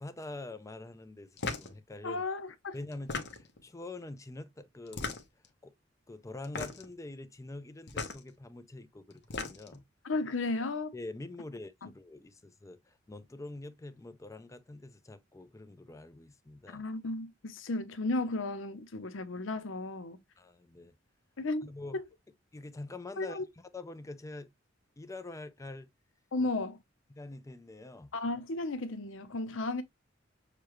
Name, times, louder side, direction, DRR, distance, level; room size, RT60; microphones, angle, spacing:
voice 1, 0.0-2.2 2.7-5.0 5.6-5.7 6.1-9.8 10.9-16.8 20.4-20.9 21.6-22.0 22.5-23.4 23.7-24.5 25.0-25.9 27.1-28.1, left 2 dB, 15° left, 0.4 m, -45 dB
sound 1, 1.4-1.7 2.9-3.6 4.9-5.5 6.4-6.9 7.9-8.2 9.1-9.8, left 4 dB, 60° left, 0.9 m, -37 dB
voice 2, 2.0-2.8 10.0-10.9 11.8-11.9 16.7-20.2 21.4-21.7 21.9-22.0 23.2-23.4 26.3-26.8 28.1-29.8, left 2 dB, 90° left, 0.8 m, -34 dB
6.6 x 2.2 x 3.0 m
head